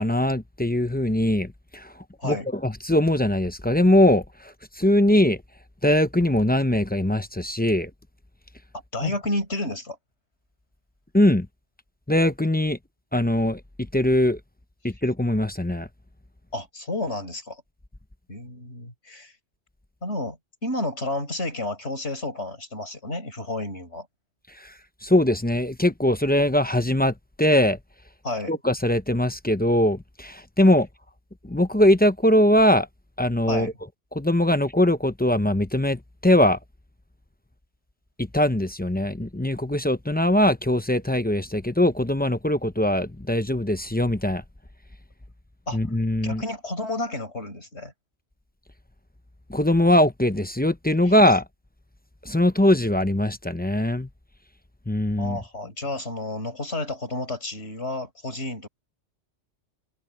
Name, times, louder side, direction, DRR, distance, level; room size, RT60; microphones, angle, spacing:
voice 1, 0.0-5.4 5.8-7.9 9.0-9.1 11.1-11.5 12.1-12.8 13.1-13.6 13.9-14.4 14.8-15.9 24.5-27.8 28.5-30.9 31.4-32.9 33.2-33.7 34.1-36.6 38.2-44.4 45.7-46.4 49.5-51.4 52.2-54.1 54.9-55.4, left 1 dB, 10° left, 0.6 m, -21 dB
voice 2, 8.9-10.0 16.5-17.6 18.3-19.3 20.0-24.1 28.2-28.5 33.5-33.7 45.7-45.8 46.2-47.9 55.2-58.7, left 2 dB, 70° left, 6.4 m, -31 dB
omnidirectional pair, 1.2 m